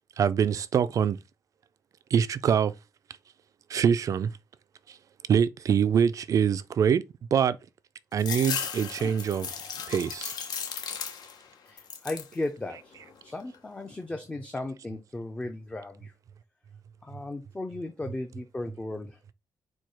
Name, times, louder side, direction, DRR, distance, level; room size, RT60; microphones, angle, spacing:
voice 1, 0.2-1.2 2.1-2.7 3.7-4.3 4.9-5.0 5.3-7.0 7.3-7.6 8.1-9.5 9.9-10.3, right 7 dB, 55° right, 0.3 m, -24 dB
sound 1, 8.2-11.5 11.8-12.4 12.8-13.6, left 7 dB, 75° left, 0.8 m, -36 dB
voice 2, 11.7-13.0 13.2-16.1 17.0-19.2, left 2 dB, 15° left, 0.5 m, -36 dB
4.4 x 2.3 x 4.7 m
wide cardioid pair, 145°, 7 cm